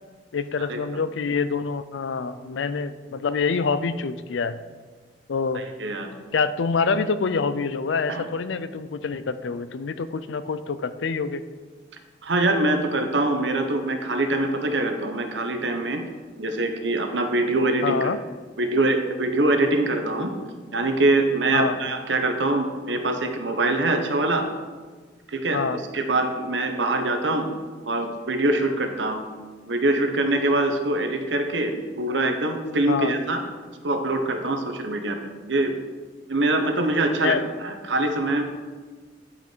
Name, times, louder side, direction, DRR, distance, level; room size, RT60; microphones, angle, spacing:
voice 1, 0.3-4.6 5.3-5.6 6.3-11.4 17.8-18.2 21.5-21.8 25.5-25.8 32.9-33.1 37.2-37.4, left 5 dB, 90° left, 13 dB, 0.5 m, -26 dB
voice 2, 5.5-6.1 8.1-8.2 12.2-16.0 16.4-18.1 18.6-20.3 20.7-24.5 25.3-25.6 25.9-27.5 27.9-29.2 29.7-33.4 33.8-35.7 36.3-38.4, right 2 dB, 75° right, 6 dB, 1.0 m, -24 dB
9.7 x 5.8 x 4.5 m, 1.5 s
head